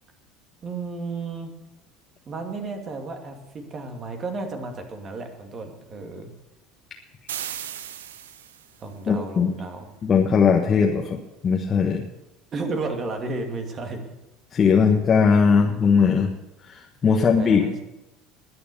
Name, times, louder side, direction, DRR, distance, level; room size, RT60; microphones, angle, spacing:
voice 1, 0.6-1.5 2.3-6.3 8.8-9.9 12.5-14.0 14.8-14.9 17.0-17.8, right 3 dB, 35° right, 4 dB, 2.5 m, -33 dB
sound 1, 7.3-8.8, right 10 dB, 75° right, 0.7 m, -36 dB
voice 2, 9.1-9.5 10.0-12.0 14.5-16.3 16.7-17.7, left 6 dB, 35° left, 1 dB, 1.3 m, -19 dB
20.0 x 6.9 x 7.0 m, 0.96 s
figure-of-eight pair, 65°, 0 cm